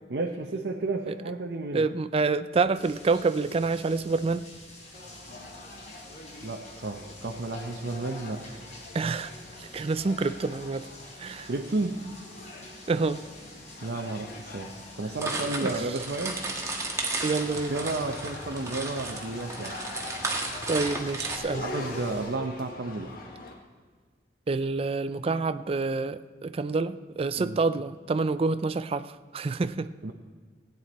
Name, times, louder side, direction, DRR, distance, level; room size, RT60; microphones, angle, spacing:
voice 1, 0.1-1.8 6.4-8.4 11.5-12.1 13.8-16.4 17.7-19.8 21.6-23.1 27.4-27.6 30.0-30.1, right 2 dB, 65° right, 3 dB, 0.7 m, -32 dB
voice 2, 1.7-4.5 8.9-9.3 9.6-10.9 11.2-11.5 12.9-13.2 15.6-15.8 17.2-17.7 20.7-21.7 24.5-29.9, right 3 dB, 35° right, 13 dB, 0.4 m, -27 dB
sound 1, 2.7-22.2, left 1 dB, 40° left, 4.3 m, -48 dB
sound 2, 4.9-23.5, left 2 dB, 55° left, 1.5 m, -44 dB
sound 3, 15.2-21.4, right 2 dB, 20° right, 1.4 m, -34 dB
16.0 x 9.3 x 4.2 m, 1.6 s
head